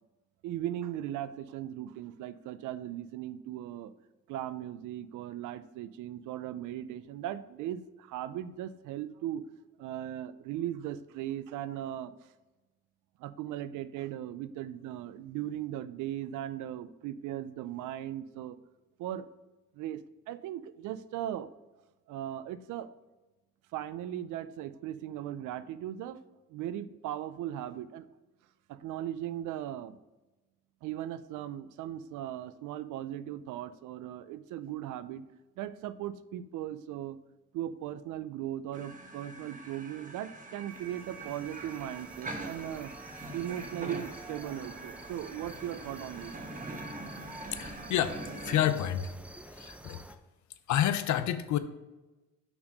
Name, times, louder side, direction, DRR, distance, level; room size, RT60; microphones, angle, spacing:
voice 1, 0.4-3.9 4.3-9.4 9.8-12.1 13.2-18.6 19.0-19.3 19.7-20.0 20.3-21.5 22.1-22.9 23.7-26.2 26.5-28.1 28.7-30.0 30.8-35.2 35.6-37.2 37.5-42.9 43.3-46.3, right 12 dB, 90° right, 14 dB, 0.5 m, -38 dB
sound 1, 38.7-48.7, right 2 dB, 25° right, 1.0 m, -43 dB
sound 2, 40.7-50.2, right 1 dB, 5° right, 0.5 m, -49 dB
voice 2, 47.6-49.1 49.6-50.0 50.7-51.6, left 11 dB, 70° left, 11 dB, 0.6 m, -29 dB
5.8 x 4.1 x 5.2 m, 1.1 s
cardioid pair, 90°, 30 cm